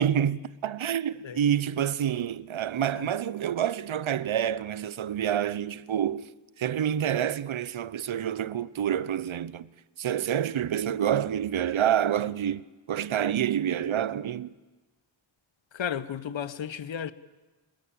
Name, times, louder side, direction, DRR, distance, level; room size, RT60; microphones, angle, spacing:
voice 1, 0.0-6.3 6.6-9.7 10.0-14.5, right 9 dB, 80° right, 0.8 m, -28 dB
voice 2, 15.7-17.1, left 8 dB, 70° left, 1.0 m, -34 dB
30.0 x 19.5 x 8.7 m
wide cardioid pair, 60°, 47 cm